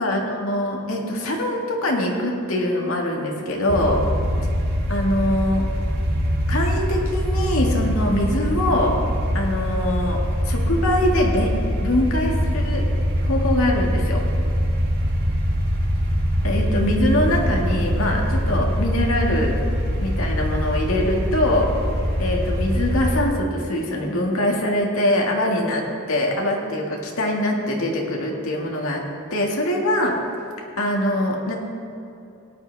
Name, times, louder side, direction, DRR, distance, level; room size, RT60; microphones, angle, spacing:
voice 1, 0.0-4.0 4.9-5.6 6.5-9.0 9.3-10.2 10.4-11.5 11.8-12.8 13.2-14.2 16.4-19.6 20.0-21.7 22.2-29.0 29.3-30.2 30.8-31.6, left 1 dB, 80° left, -1 dB, 1.9 m, -23 dB
sound 1, 3.7-23.2, equal, 50° right, 2.1 m, -23 dB
18.0 x 10.5 x 3.4 m, 2.7 s
head